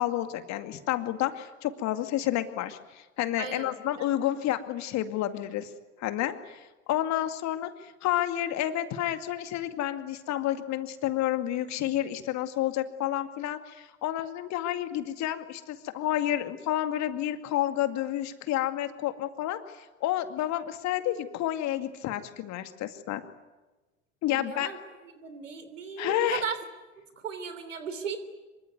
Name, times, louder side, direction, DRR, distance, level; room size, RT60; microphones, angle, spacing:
voice 1, 0.0-5.7 6.0-23.2 24.2-24.7 26.0-26.4, left 13 dB, 45° left, 8 dB, 2.3 m, -30 dB
voice 2, 3.4-4.1 24.3-24.8 25.2-26.6 27.2-28.2, right 6 dB, 80° right, 11 dB, 3.3 m, -36 dB
26.0 x 24.0 x 9.5 m, 1.2 s
figure-of-eight pair, 70°, 37 cm